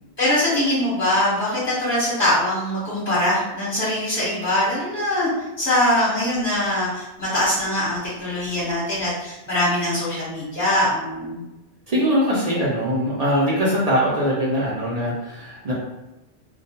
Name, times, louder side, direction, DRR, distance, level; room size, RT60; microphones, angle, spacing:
voice 1, 0.2-5.3 5.6-11.4, left 1 dB, 15° left, -11 dB, 0.8 m, -22 dB
voice 2, 11.9-15.7, equal, 45° right, -6 dB, 0.5 m, -22 dB
2.2 x 2.2 x 2.8 m, 0.97 s
omnidirectional pair, 1.2 m